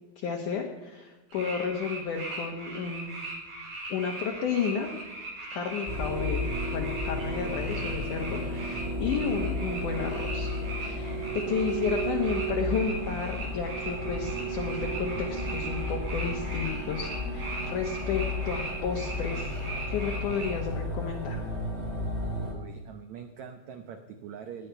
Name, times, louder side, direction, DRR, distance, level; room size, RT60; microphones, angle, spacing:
voice 1, 0.2-3.2 3.9-4.9 5.5-19.6 19.9-21.4, left 6 dB, 65° left, 1 dB, 2.4 m, -32 dB
sound 1, 1.3-20.5, right 2 dB, 65° right, 6.7 m, -39 dB
sound 2, 5.9-22.5, equal, 10° right, 2.5 m, -33 dB
voice 2, 22.4-24.7, right 7 dB, 85° right, 7 dB, 1.6 m, -43 dB
18.0 x 10.5 x 5.7 m, 1.2 s
omnidirectional pair, 4.5 m